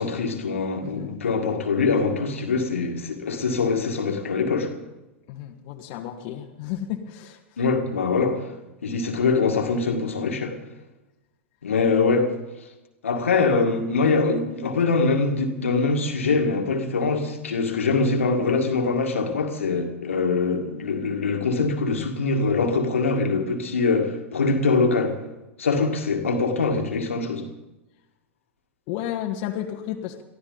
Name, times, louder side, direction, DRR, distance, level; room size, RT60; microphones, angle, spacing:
voice 1, 0.0-4.7 7.6-8.5 8.8-10.6 11.6-12.3 13.0-25.2 25.6-27.5, left 4 dB, 75° left, 2.0 m, -23 dB
voice 2, 0.8-1.2 5.3-7.6 25.7-25.9 28.9-30.2, left 11 dB, 50° left, 1.5 m, -32 dB
23.0 x 14.5 x 4.0 m
figure-of-eight pair, 95°, 7 cm